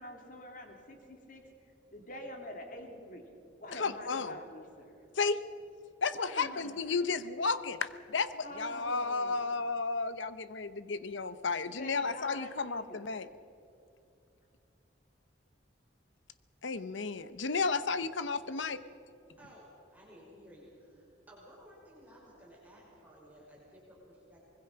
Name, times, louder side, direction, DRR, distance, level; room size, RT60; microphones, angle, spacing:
voice 1, 0.0-1.4 1.9-3.2 3.6-4.9 6.1-7.0 8.4-9.4 11.8-13.1, left 1 dB, 45° left, 3 dB, 2.9 m, -46 dB
voice 2, 3.7-4.4 5.2-5.4 6.0-13.3 16.6-18.8, left 4 dB, 80° left, 14 dB, 0.9 m, -33 dB
voice 3, 19.4-24.5, equal, 10° right, -5 dB, 5.6 m, -56 dB
24.5 x 21.0 x 5.9 m, 2.7 s
head